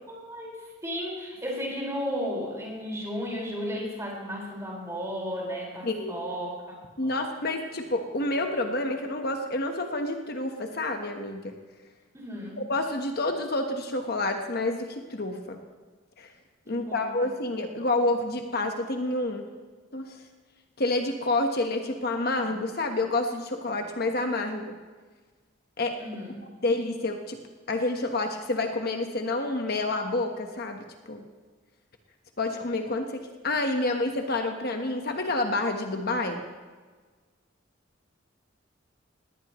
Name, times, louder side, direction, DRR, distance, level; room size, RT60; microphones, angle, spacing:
voice 1, 0.1-6.7 7.0-7.2 12.1-12.6 16.6-17.1 26.0-26.4, equal, 15° right, -3 dB, 5.1 m, -34 dB
voice 2, 5.8-6.2 7.0-11.5 12.6-15.6 16.2-16.3 16.7-19.5 19.9-20.2 20.8-24.8 25.8-26.0 26.6-27.4 27.7-30.8 31.1-31.3 32.4-36.4, left 2 dB, 55° left, 4 dB, 1.2 m, -28 dB
18.5 x 18.5 x 3.1 m, 1.4 s
head